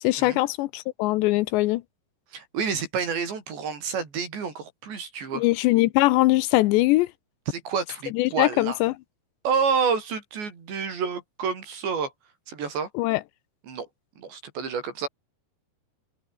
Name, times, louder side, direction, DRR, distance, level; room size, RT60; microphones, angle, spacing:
voice 1, 0.0-1.8 5.3-7.1 8.1-8.9 13.0-13.2, left 18 dB, 80° left, 2.8 m, -21 dB
voice 2, 2.3-5.5 7.5-8.8 9.4-12.1 12.5-12.9 13.7-13.9 14.2-15.1, right 6 dB, 70° right, 7.5 m, -29 dB
omnidirectional pair, 5.3 m